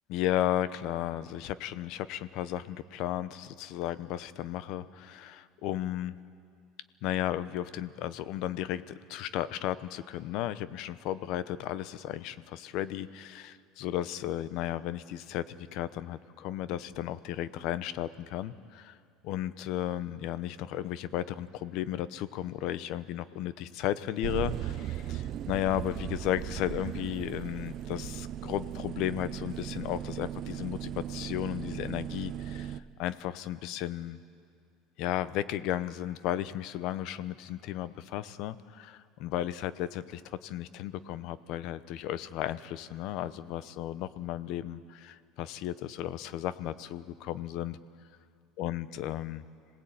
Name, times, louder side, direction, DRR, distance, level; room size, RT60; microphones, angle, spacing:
voice 1, 0.1-6.2 7.0-19.0 19.2-34.2 35.0-47.8 48.6-49.4, left 12 dB, 65° left, 15 dB, 0.9 m, -34 dB
sound 1, 24.2-32.8, right 11 dB, 50° right, 0.7 m, -37 dB
26.5 x 18.5 x 8.8 m, 2.3 s
supercardioid pair, 105°, 0 cm